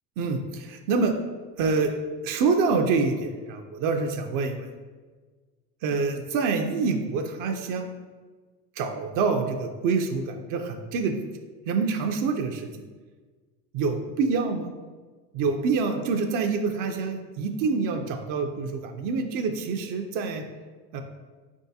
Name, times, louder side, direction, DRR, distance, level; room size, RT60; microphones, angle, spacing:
voice 1, 0.2-1.1 1.6-1.9 2.2-4.7 5.8-7.9 8.8-11.1 11.7-12.8 13.7-14.7 15.3-20.4 20.9-21.0, right 4 dB, 65° right, 4 dB, 0.5 m, -26 dB
3.8 x 3.5 x 2.7 m, 1.4 s
supercardioid pair, 100°, 35 cm